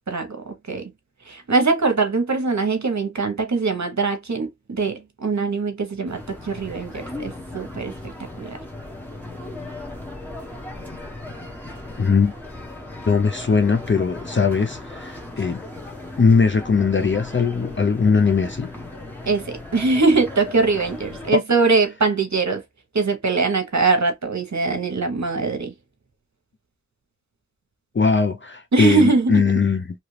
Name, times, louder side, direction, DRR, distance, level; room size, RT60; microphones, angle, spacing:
voice 1, 0.1-0.9 1.3-8.1 8.4-8.6 19.3-22.6 22.9-25.7 28.7-29.5, right 4 dB, 65° right, 0.9 m, -22 dB
sound 1, 6.1-21.3, left 2 dB, 5° left, 1.2 m, -37 dB
voice 2, 12.0-12.3 13.1-15.6 16.2-18.7 21.3-21.4 27.9-29.8, left 5 dB, 40° left, 0.5 m, -20 dB
2.9 x 2.4 x 3.2 m
wide cardioid pair, 40°, 30 cm